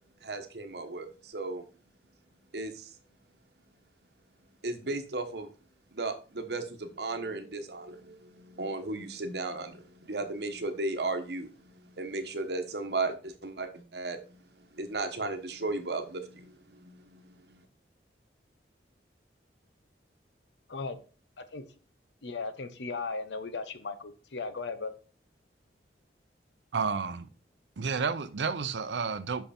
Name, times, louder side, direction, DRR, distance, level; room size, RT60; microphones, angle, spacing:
voice 1, 0.2-1.6 2.5-3.0 4.6-5.5 5.9-17.6, right 3 dB, 70° right, 1.0 m, -35 dB
voice 2, 22.2-24.9, left 4 dB, 85° left, 0.8 m, -36 dB
voice 3, 26.7-27.3 27.8-29.4, right 5 dB, 85° right, 0.6 m, -31 dB
5.7 x 5.6 x 4.3 m
head